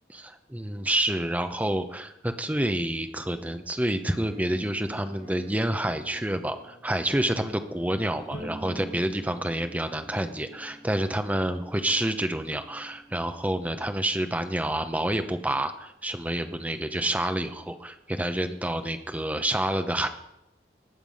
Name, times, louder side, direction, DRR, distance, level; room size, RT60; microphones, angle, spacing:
voice 1, 0.1-20.1, right 1 dB, 10° right, 7 dB, 0.8 m, -28 dB
Musical instrument, 4.1-13.9, equal, 25° left, 2.1 m, -50 dB
Bowed string instrument, 8.3-11.5, right 1 dB, 60° left, 4.6 m, -44 dB
19.0 x 6.8 x 5.5 m, 0.87 s
head